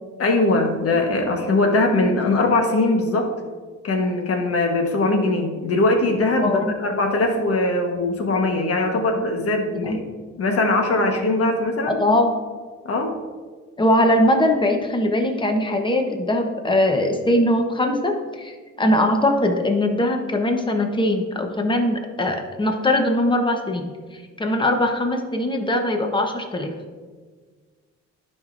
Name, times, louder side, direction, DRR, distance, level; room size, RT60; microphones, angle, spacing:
voice 1, 0.2-3.3 3.8-10.0 10.4-12.0 12.8-13.1, left 2 dB, 50° left, 3 dB, 1.3 m, -21 dB
voice 2, 6.4-6.7 9.8-10.0 11.9-12.3 13.8-26.7, left 1 dB, 15° left, 4 dB, 1.0 m, -21 dB
11.5 x 5.4 x 2.6 m, 1.5 s
cardioid pair, 90°, 30 cm